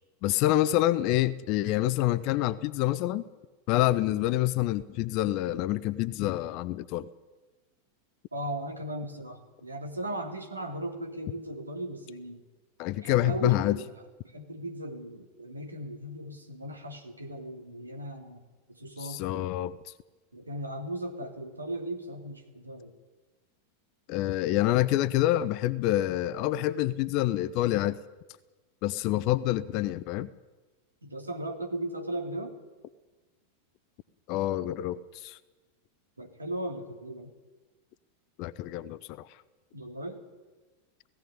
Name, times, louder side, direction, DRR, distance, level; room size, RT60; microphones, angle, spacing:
voice 1, 0.2-3.2 3.7-7.1 12.8-13.8 19.0-19.9 24.1-28.0 28.8-30.3 34.3-35.4 38.4-39.3, left 15 dB, 40° left, 15 dB, 0.7 m, -27 dB
voice 2, 8.3-12.4 13.0-13.9 14.3-18.4 18.7-19.2 20.3-22.9 31.0-32.6 36.2-37.3 39.7-40.2, right 1 dB, 80° right, 4 dB, 2.9 m, -37 dB
17.5 x 15.5 x 9.9 m, 1.2 s
figure-of-eight pair, 90°, 0 cm